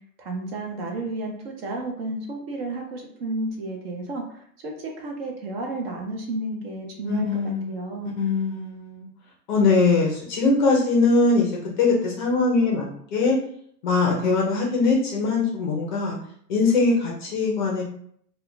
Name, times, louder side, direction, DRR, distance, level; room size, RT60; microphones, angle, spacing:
voice 1, 0.2-7.4 7.7-8.1, right 2 dB, 40° right, 1 dB, 0.5 m, -32 dB
voice 2, 7.0-7.8 8.2-9.1 9.5-11.5 11.8-13.4 13.8-16.2 16.5-17.8, left 3 dB, 30° left, -2 dB, 0.5 m, -21 dB
2.2 x 2.2 x 3.7 m, 0.65 s
hypercardioid pair, 140°, 49 cm